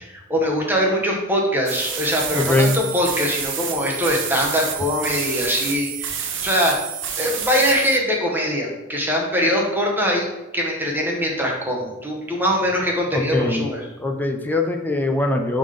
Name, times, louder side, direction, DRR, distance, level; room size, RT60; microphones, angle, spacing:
voice 1, 0.3-6.8 7.2-13.9, equal, 10° right, -1 dB, 0.9 m, -22 dB
sound 1, 1.7-8.0, right 8 dB, 60° right, 0.7 m, -29 dB
voice 2, 2.3-2.8 13.1-13.7 14.0-15.6, left 2 dB, 10° left, 3 dB, 0.5 m, -21 dB
5.1 x 3.7 x 5.1 m, 0.98 s
head